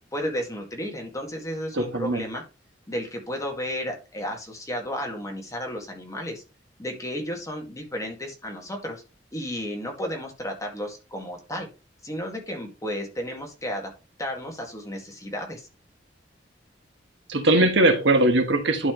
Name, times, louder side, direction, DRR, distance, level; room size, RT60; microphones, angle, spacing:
voice 1, 0.1-2.4 2.9-6.4 6.8-9.0 9.3-11.7 12.0-13.9 14.2-15.7, equal, 20° left, 1.9 m, -33 dB
voice 2, 1.7-2.2 17.3-18.9, right 2 dB, 70° right, 1.4 m, -20 dB
11.0 x 4.4 x 3.1 m
head